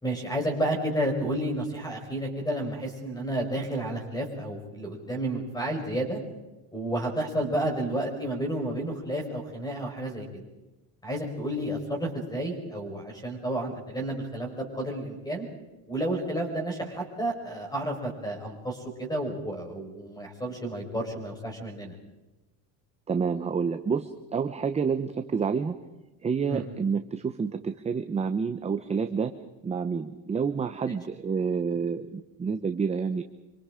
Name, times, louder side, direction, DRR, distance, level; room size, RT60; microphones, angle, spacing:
voice 1, 0.0-6.2 6.7-10.4 11.0-15.5 15.9-21.9 26.5-26.6, right 1 dB, 10° left, 3 dB, 5.1 m, -31 dB
voice 2, 23.1-25.8 26.2-29.3 29.6-33.2, right 5 dB, 15° right, 8 dB, 0.7 m, -28 dB
25.5 x 25.0 x 5.0 m, 1.1 s
cardioid pair, 165°, 47 cm